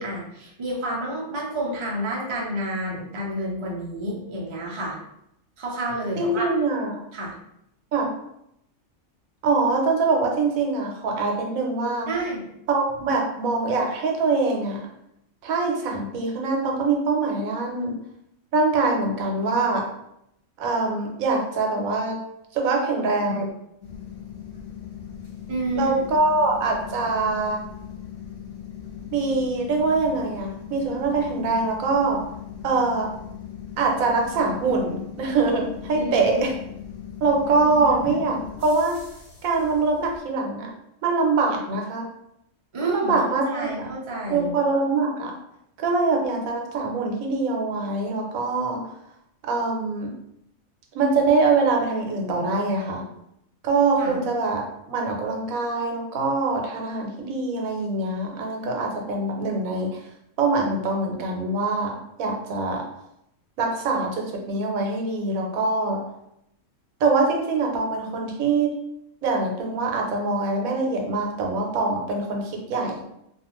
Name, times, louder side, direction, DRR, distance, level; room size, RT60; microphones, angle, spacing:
voice 1, 0.0-5.0 5.6-6.5 7.1-7.4 12.1-12.5 25.5-25.9 35.9-36.5 37.5-37.9 42.7-43.1 43.5-44.5 54.0-54.2, right 1 dB, 45° right, -3 dB, 0.3 m, -29 dB
voice 2, 6.2-7.0 7.9-8.1 9.4-12.1 12.7-14.8 15.4-18.0 18.5-19.9 20.6-22.2 22.5-23.5 25.8-27.6 29.1-32.2 32.6-33.1 33.8-36.6 37.2-39.0 39.4-40.7 41.0-42.1 42.8-43.9 44.3-45.3 45.8-48.8 49.4-50.1 50.9-53.0 53.6-60.0 60.4-62.9 63.6-66.0 67.0-68.7 69.2-73.0, right 3 dB, 80° right, 1 dB, 1.0 m, -24 dB
sound 1, 23.8-40.2, left 8 dB, 50° left, 0.9 m, -39 dB
2.4 x 2.4 x 2.9 m, 0.79 s
omnidirectional pair, 1.4 m